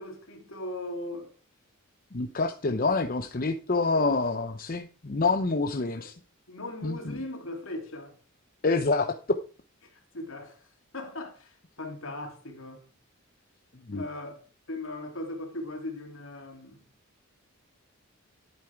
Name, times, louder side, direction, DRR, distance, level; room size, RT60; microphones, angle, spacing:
voice 1, 0.0-1.3 6.0-6.1 6.5-8.1 9.9-10.7 10.9-12.8 13.9-14.4 14.7-16.8, left 1 dB, 65° left, 2.8 m, -39 dB
voice 2, 2.1-6.1 6.8-7.2 8.6-9.4 13.9-14.0, left 3 dB, 40° left, 0.7 m, -27 dB
11.0 x 8.7 x 4.6 m
head